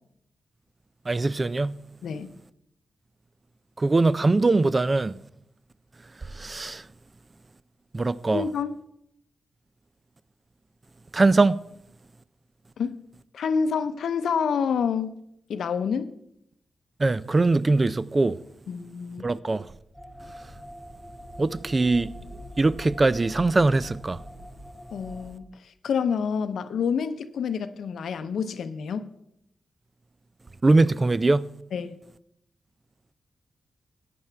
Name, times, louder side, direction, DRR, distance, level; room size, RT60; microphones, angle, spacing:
voice 1, 1.1-1.8 3.8-5.2 6.3-6.9 7.9-8.4 11.1-11.6 17.0-18.4 19.2-19.7 21.4-22.1 22.6-24.2 30.6-31.5, right 3 dB, 30° right, 0.4 m, -22 dB
voice 2, 2.0-2.3 8.3-8.8 12.8-13.0 13.3-15.2 15.5-16.1 18.7-19.3 24.9-25.5 25.8-29.1 31.7-32.0, left 6 dB, 85° left, 0.6 m, -28 dB
sound 1, 19.9-25.3, equal, 5° right, 3.0 m, -43 dB
14.5 x 9.4 x 3.4 m
cardioid pair, 75°, 0 cm